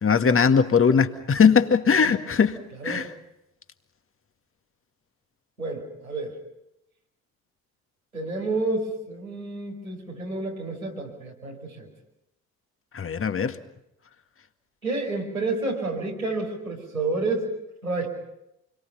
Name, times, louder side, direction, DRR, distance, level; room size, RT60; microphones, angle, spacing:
voice 1, 0.0-2.6 2.8-3.1 12.9-13.6, left 6 dB, 30° left, 8 dB, 2.0 m, -20 dB
voice 2, 5.6-6.4 8.1-11.9 14.8-17.5 17.8-18.1, right 3 dB, 90° right, -3 dB, 5.6 m, -29 dB
28.5 x 23.0 x 5.8 m, 0.84 s
figure-of-eight pair, 50°, 42 cm